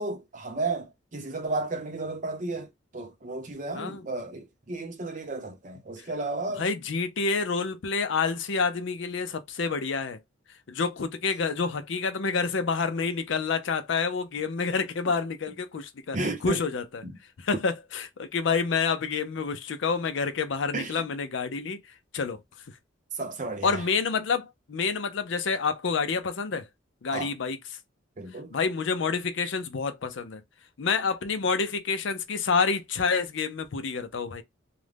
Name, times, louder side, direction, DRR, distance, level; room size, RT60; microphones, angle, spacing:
voice 1, 0.0-2.7 2.9-6.7 16.1-16.6 17.0-17.1 20.7-21.0 23.1-23.8 27.1-27.3 28.2-28.6, right 2 dB, 40° right, 0.6 m, -33 dB
voice 2, 3.7-4.0 6.5-10.2 10.7-16.2 16.4-17.0 17.4-21.8 22.1-22.4 23.6-26.7 27.0-27.6 28.5-30.4 30.8-34.4, left 5 dB, 65° left, 0.5 m, -28 dB
2.4 x 2.1 x 3.2 m
head